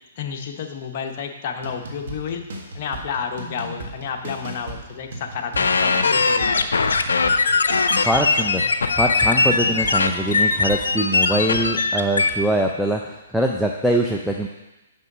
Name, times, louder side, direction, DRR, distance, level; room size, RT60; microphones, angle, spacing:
voice 1, 0.2-2.4 2.7-6.9, left 6 dB, 45° left, 3 dB, 0.9 m, -31 dB
sound 1, 1.6-11.9, right 1 dB, 65° right, 1.5 m, -36 dB
sound 2, 5.6-12.3, left 4 dB, 85° left, 0.5 m, -20 dB
voice 2, 8.1-8.6 9.0-14.5, right 1 dB, ahead, 0 dB, 0.4 m, -23 dB
5.5 x 5.3 x 6.1 m, 1.0 s
hypercardioid pair, 145°, 0 cm